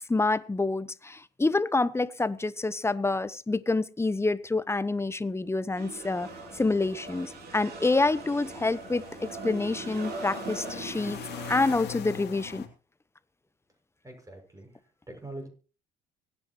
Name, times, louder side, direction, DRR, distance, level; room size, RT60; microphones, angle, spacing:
voice 1, 0.1-6.3 6.5-11.2 11.5-12.6, left 3 dB, 10° left, 1.0 m, -27 dB
sound 1, 5.8-11.7, right 4 dB, 50° right, 3.6 m, -41 dB
sound 2, 6.2-12.7, left 9 dB, 55° left, 2.7 m, -43 dB
voice 2, 14.0-14.7 15.1-15.5, right 2 dB, 15° right, 6.5 m, -42 dB
24.5 x 9.8 x 3.0 m
hypercardioid pair, 70°, 21 cm